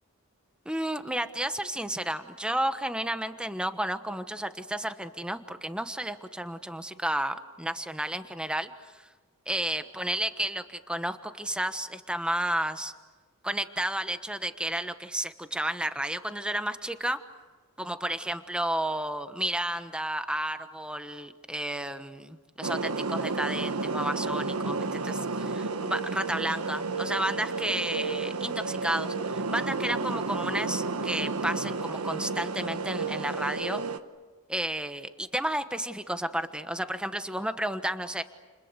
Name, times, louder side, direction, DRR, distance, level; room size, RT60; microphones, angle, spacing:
voice 1, 0.6-9.0 9.5-12.9 13.4-17.2 17.8-33.8 34.5-38.2, right 1 dB, 5° right, 9 dB, 1.1 m, -32 dB
sound 1, 22.6-34.0, right 3 dB, 90° right, 1.3 m, -31 dB
30.0 x 29.5 x 6.8 m, 1.3 s
head